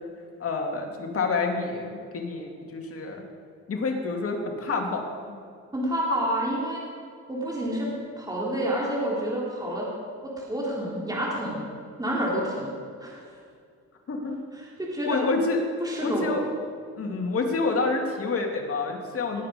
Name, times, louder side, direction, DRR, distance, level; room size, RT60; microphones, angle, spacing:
voice 1, 0.4-3.2 3.7-5.4 14.1-14.4 15.1-15.6 16.0-16.4 17.0-19.4, left 3 dB, 50° left, 2 dB, 2.6 m, -28 dB
voice 2, 5.7-6.8 7.3-7.9 8.2-9.9 10.2-11.6 12.0-12.7 13.0-13.2 14.5-15.2 15.8-16.4 19.3-19.4, right 1 dB, 15° right, -5 dB, 3.7 m, -29 dB
19.5 x 8.9 x 5.3 m, 2.2 s
cardioid pair, 90°, 30 cm